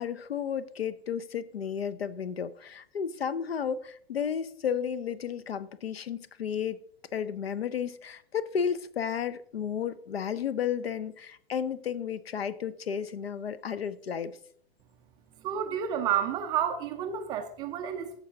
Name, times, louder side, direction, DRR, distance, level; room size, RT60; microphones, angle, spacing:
voice 1, 0.0-6.8 7.1-14.4, left 7 dB, 70° left, 0.7 m, -33 dB
voice 2, 15.4-18.2, right 9 dB, 15° right, 0.3 m, -30 dB
14.0 x 4.7 x 3.8 m
figure-of-eight pair, 105°, 31 cm